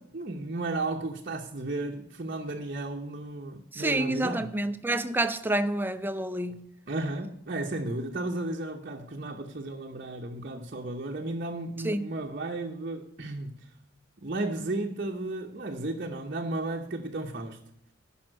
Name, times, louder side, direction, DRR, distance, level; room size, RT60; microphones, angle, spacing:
voice 1, 0.0-4.5 6.9-13.7 14.2-17.6, right 2 dB, 45° right, 0.8 m, -34 dB
voice 2, 3.7-6.7 11.8-12.1, right 1 dB, 10° right, 0.5 m, -28 dB
10.5 x 5.7 x 7.5 m
head